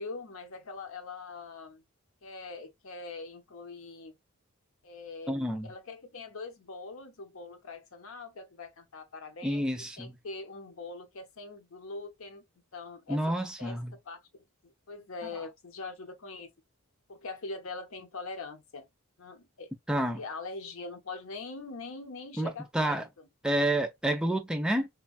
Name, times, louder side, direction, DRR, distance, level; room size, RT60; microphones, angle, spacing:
voice 1, 0.0-1.8 2.2-4.1 4.8-12.4 12.7-13.2 13.6-13.8 14.1-14.2 14.6-16.5 17.1-18.9 19.2-19.7 20.1-23.3, left 3 dB, 65° left, 0.7 m, -42 dB
voice 2, 5.3-5.7 9.4-10.2 13.1-13.9 19.9-20.2 22.4-23.0 23.4-24.9, right 1 dB, 5° right, 0.3 m, -29 dB
3.4 x 2.2 x 2.3 m
head